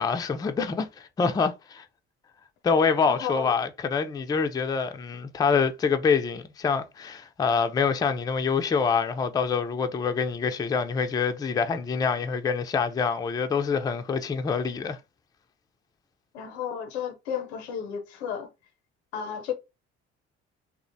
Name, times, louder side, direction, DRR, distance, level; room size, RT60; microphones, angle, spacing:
voice 1, 0.0-1.9 2.6-15.0, left 5 dB, 15° left, 0.3 m, -26 dB
voice 2, 3.1-3.5 16.3-18.5 19.1-19.5, left 8 dB, 85° left, 0.6 m, -33 dB
2.5 x 2.0 x 2.5 m
hypercardioid pair, 60°, 32 cm